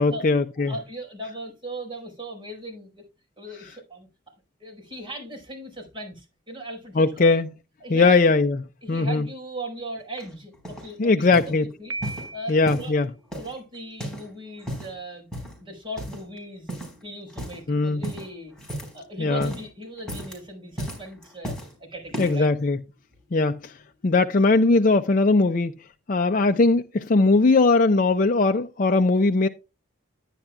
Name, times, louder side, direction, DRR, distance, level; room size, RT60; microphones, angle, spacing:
voice 1, 0.0-0.7 7.0-7.5 7.9-8.6 8.9-9.3 11.0-11.7 12.5-13.1 17.7-18.0 19.2-19.5 22.2-22.8 23.3-23.8 24.0-25.7 26.1-29.5, left 3 dB, 40° left, 0.5 m, -20 dB
voice 2, 0.6-3.0 3.4-4.1 4.6-7.3 7.8-8.2 8.8-11.9 12.3-13.0 13.4-18.5 18.9-22.5 26.3-26.5, right 1 dB, 25° right, 4.8 m, -38 dB
sound 1, 10.2-10.9 11.3-11.6 12.0-12.9 13.3-14.3 14.6-15.0 15.3-15.6 16.0-16.4 16.7-17.0 17.3-17.6 18.0-19.0 19.3-19.7 20.0-20.4 20.8-21.7 22.1-22.5 23.1-23.2, right 1 dB, 5° left, 4.3 m, -35 dB
Piano, 11.9-12.9, right 2 dB, 70° right, 0.8 m, -36 dB
11.5 x 9.8 x 2.2 m
head